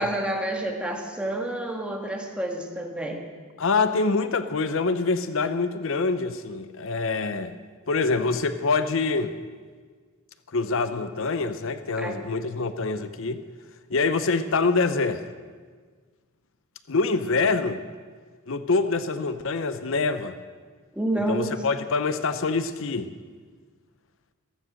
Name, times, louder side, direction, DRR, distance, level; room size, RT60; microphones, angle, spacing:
voice 1, 0.0-3.2 12.0-12.2 20.9-21.6, right 1 dB, 5° right, 2 dB, 1.7 m, -29 dB
voice 2, 3.6-7.6 7.9-9.3 10.5-13.4 13.9-15.2 16.9-17.8 18.5-20.3 21.3-23.1, left 4 dB, 65° left, 11 dB, 0.7 m, -25 dB
15.0 x 14.5 x 6.4 m, 1.5 s
head